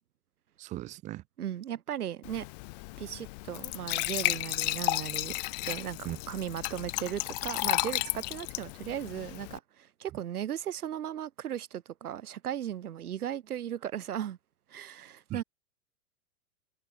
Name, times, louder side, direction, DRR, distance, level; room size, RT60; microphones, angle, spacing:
voice 1, 0.6-1.2 6.0-6.2 15.3-15.4, right 16 dB, 15° right, 1.5 m, -38 dB
voice 2, 1.4-2.4 3.0-5.4 5.7-14.4 14.7-15.4, right 10 dB, 85° right, 5.0 m, -37 dB
Glass / Trickle dribble / Fill (with liquid), 2.2-9.6, left 25 dB, 30° left, 1.5 m, -33 dB
supercardioid pair, 175°, 44 cm